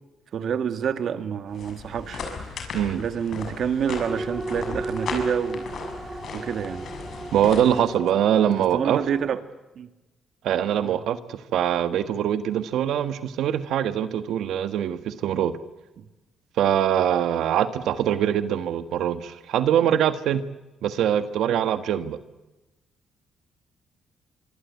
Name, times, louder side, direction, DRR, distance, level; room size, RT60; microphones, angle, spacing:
voice 1, 0.3-5.7 6.3-6.9 8.5-9.4 9.8-9.9 10.8-11.0 16.0-16.1, right 8 dB, 65° right, 9 dB, 2.1 m, -28 dB
sound 1, 1.5-7.8, left 4 dB, 60° left, 6.7 m, -36 dB
sound 2, 4.0-9.3, right 2 dB, 20° right, 2.5 m, -35 dB
voice 2, 7.3-9.0 10.4-15.5 16.6-20.4 20.8-22.2, right 10 dB, 80° right, 11 dB, 1.4 m, -23 dB
25.0 x 25.0 x 8.3 m, 1.0 s
cardioid pair, 90°, 0 cm